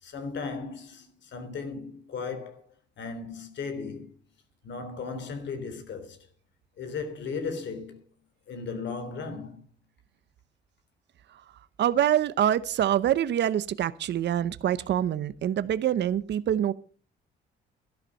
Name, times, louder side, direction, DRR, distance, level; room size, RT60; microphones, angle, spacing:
voice 1, 0.0-2.6 3.0-4.1 4.6-6.2 6.8-8.0 8.5-9.6, left 4 dB, 65° left, 3.5 m, -36 dB
voice 2, 11.8-16.7, right 10 dB, 60° right, 0.8 m, -25 dB
13.0 x 11.5 x 5.4 m
cardioid pair, 90°, 20 cm